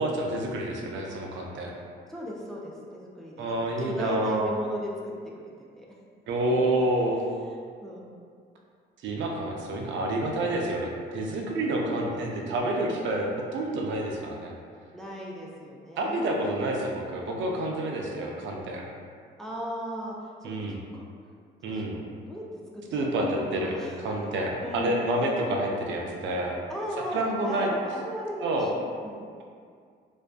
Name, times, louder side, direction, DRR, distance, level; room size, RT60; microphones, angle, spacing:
voice 1, 0.0-1.7 3.4-4.5 6.3-7.2 9.0-14.5 16.0-18.8 20.4-20.8 21.6-22.0 22.9-26.6 27.1-27.7 28.4-28.7, right 1 dB, 70° right, 0 dB, 0.4 m, -28 dB
voice 2, 2.1-5.9 7.8-8.1 11.7-12.7 14.9-16.3 19.4-21.0 21.7-24.1 24.6-25.1 26.7-29.3, equal, ahead, -3 dB, 0.3 m, -37 dB
2.5 x 2.2 x 2.4 m, 2.1 s
cardioid pair, 90°, 20 cm